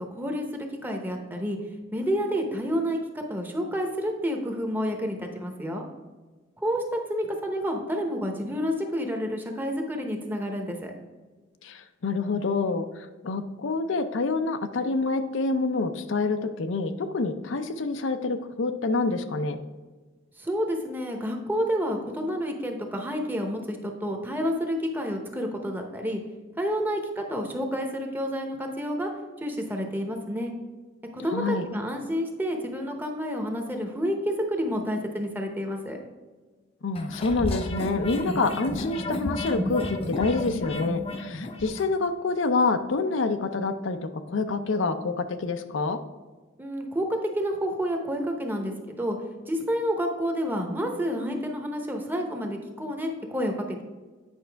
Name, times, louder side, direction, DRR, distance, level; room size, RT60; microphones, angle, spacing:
voice 1, 0.1-1.6 1.9-3.0 3.3-5.9 6.6-10.9 20.4-26.2 26.6-29.1 29.4-30.5 31.1-36.0 46.6-49.2 49.5-53.8, equal, 10° right, 3 dB, 0.8 m, -29 dB
voice 2, 11.6-19.6 31.3-31.7 36.8-46.0, left 3 dB, 75° left, 8 dB, 0.5 m, -27 dB
sound 1, 36.9-41.9, left 1 dB, 30° left, 0.6 m, -32 dB
8.9 x 5.4 x 3.4 m, 1.3 s
head